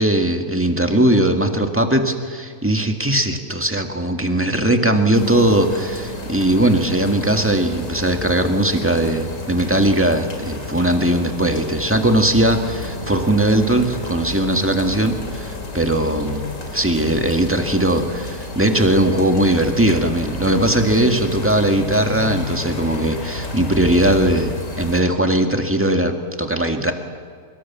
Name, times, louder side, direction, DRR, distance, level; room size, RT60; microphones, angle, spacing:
voice 1, 0.0-16.5 16.7-26.9, right 1 dB, 10° right, 5 dB, 1.8 m, -19 dB
sound 1, 5.1-25.0, left 2 dB, 70° left, 3.2 m, -31 dB
24.5 x 22.0 x 7.3 m, 2.1 s
omnidirectional pair, 1.4 m